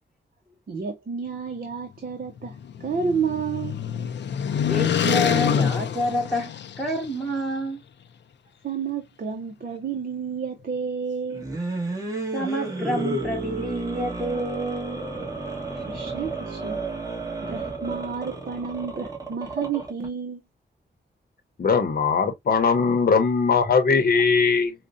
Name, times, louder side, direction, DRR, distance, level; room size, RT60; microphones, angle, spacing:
voice 1, 0.7-3.8 8.6-11.5 15.9-16.8 17.4-20.4, right 6 dB, 50° right, 0.7 m, -30 dB
sound 1, 2.3-7.1, left 8 dB, 70° left, 0.5 m, -26 dB
voice 2, 4.6-7.8 12.3-15.0 15.7-15.8, equal, ahead, 1.1 m, -28 dB
sound 2, 11.3-20.1, right 2 dB, 20° right, 1.3 m, -32 dB
voice 3, 21.6-24.7, left 5 dB, 55° left, 0.8 m, -20 dB
4.8 x 2.2 x 2.5 m
wide cardioid pair, 125°, 19 cm